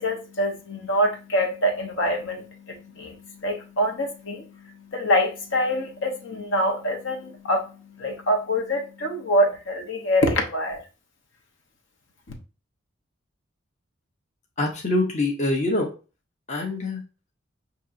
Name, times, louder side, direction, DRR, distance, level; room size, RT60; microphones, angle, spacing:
voice 1, 0.0-10.8, equal, 70° left, 1.0 m, -25 dB
voice 2, 14.6-15.9 16.5-17.0, left 2 dB, 35° left, 0.9 m, -24 dB
6.0 x 2.9 x 2.5 m
head